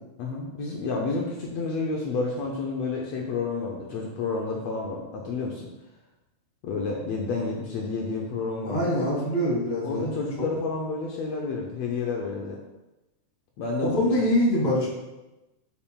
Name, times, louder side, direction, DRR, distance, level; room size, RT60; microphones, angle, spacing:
voice 1, 0.2-5.7 6.6-9.3 9.8-12.6 13.6-13.9, left 3 dB, 85° left, -1 dB, 1.4 m, -30 dB
voice 2, 8.7-10.1 10.4-10.5 13.8-14.9, left 1 dB, 15° left, -5 dB, 2.0 m, -24 dB
11.0 x 6.7 x 2.4 m, 1.0 s
omnidirectional pair, 4.0 m